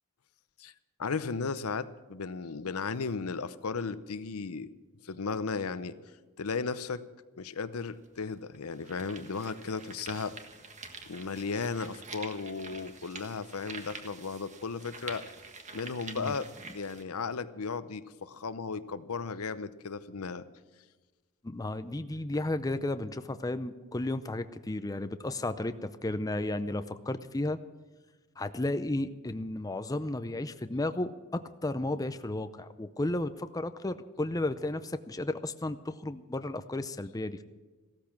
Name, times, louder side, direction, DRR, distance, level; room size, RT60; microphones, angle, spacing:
voice 1, 1.0-4.7 5.0-5.9 6.4-7.0 7.4-10.3 11.1-15.2 15.7-20.4, left 4 dB, 80° left, 14 dB, 0.7 m, -35 dB
sound 1, 7.8-7.9 8.5-17.0, right 4 dB, 35° right, 1.5 m, -47 dB
voice 2, 21.4-27.6 28.4-37.4, left 2 dB, 15° left, 10 dB, 0.5 m, -33 dB
15.5 x 13.5 x 5.9 m, 1.3 s
head